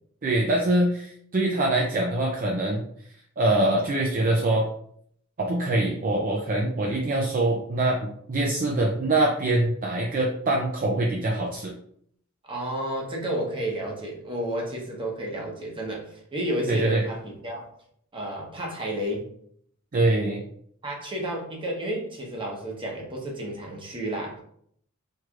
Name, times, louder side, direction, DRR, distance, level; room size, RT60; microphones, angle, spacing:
voice 1, 0.2-2.8 3.4-4.7 5.4-11.7 16.7-17.0 19.9-20.4, right 2 dB, 40° right, -1 dB, 0.5 m, -24 dB
voice 2, 12.5-17.7 18.1-19.2 20.8-24.4, right 1 dB, 25° right, -1 dB, 1.0 m, -31 dB
4.5 x 3.1 x 2.4 m, 0.65 s
head